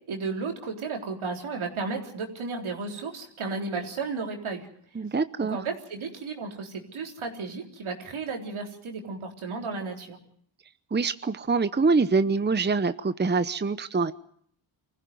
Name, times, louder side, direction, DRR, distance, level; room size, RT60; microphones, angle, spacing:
voice 1, 0.1-4.7 5.4-10.2, right 4 dB, 80° right, 2 dB, 3.9 m, -33 dB
voice 2, 5.0-5.6 10.9-14.1, right 4 dB, 20° right, 13 dB, 0.9 m, -25 dB
24.5 x 15.5 x 9.4 m, 0.65 s
cardioid pair, 60°, 48 cm